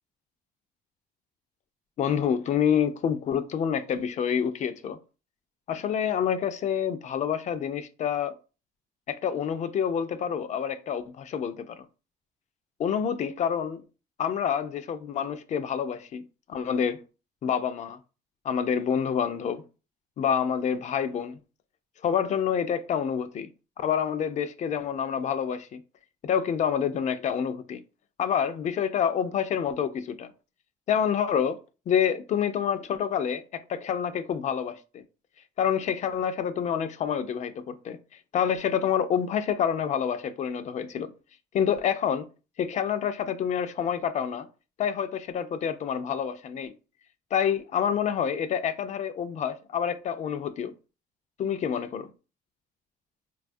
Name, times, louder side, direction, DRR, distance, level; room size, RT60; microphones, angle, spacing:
voice 1, 2.0-5.0 5.7-8.3 9.1-11.9 12.8-13.8 14.2-16.2 16.5-17.0 17.4-18.0 18.4-19.6 20.2-21.4 22.0-23.5 23.8-25.8 26.2-27.8 28.2-30.3 30.9-31.6 31.9-35.0 35.6-38.0 38.3-41.1 41.5-42.3 42.6-44.5 44.8-46.7 47.3-50.7 51.4-52.1, left 8 dB, 45° left, 0.4 m, -27 dB
4.0 x 2.3 x 2.5 m
cardioid pair, 110°, 17 cm